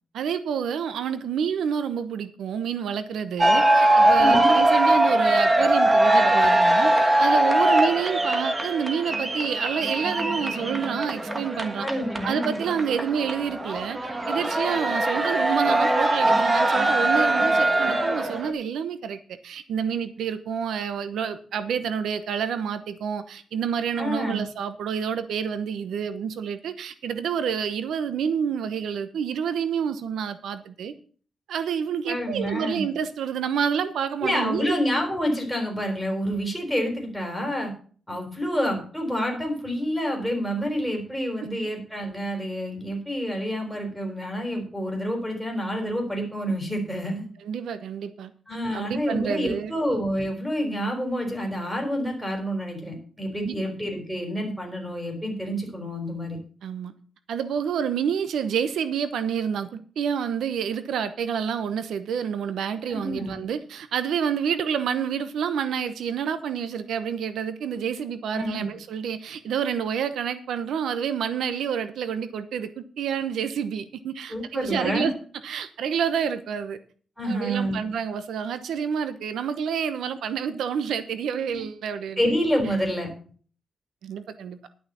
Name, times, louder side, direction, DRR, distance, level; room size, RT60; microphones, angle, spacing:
voice 1, 0.1-6.9 7.2-11.9 12.2-14.0 14.3-30.9 31.5-34.8 41.4-41.5 47.4-48.3 48.7-49.7 53.4-53.6 56.6-56.9 57.3-75.1 75.4-76.8 77.2-82.3 84.0-84.6, right 7 dB, 90° right, 11 dB, 0.9 m, -28 dB
sound 1, 3.4-18.5, right 1 dB, 20° right, 1.4 m, -21 dB
voice 2, 4.2-4.5 11.8-12.6 23.9-24.4 32.1-32.9 34.2-37.7 38.1-47.3 48.5-56.4 62.9-63.3 68.3-68.7 74.3-75.1 77.2-77.8 81.5-81.6 82.2-83.1, equal, ahead, 1 dB, 4.1 m, -28 dB
11.5 x 6.3 x 6.9 m, 0.44 s
wide cardioid pair, 135°, 0 cm